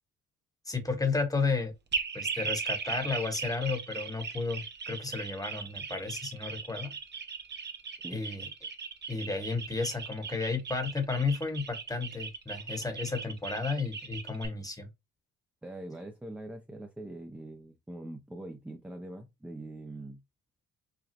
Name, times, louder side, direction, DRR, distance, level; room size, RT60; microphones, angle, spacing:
voice 1, 0.6-1.7 2.1-6.9 8.1-8.5 9.1-14.9, left 4 dB, 10° left, 1.1 m, -32 dB
sound 1, 1.9-14.5, right 5 dB, 35° right, 1.0 m, -38 dB
voice 2, 15.6-20.2, right 1 dB, 5° right, 0.6 m, -43 dB
5.1 x 2.3 x 3.0 m
cardioid pair, 90°, 30 cm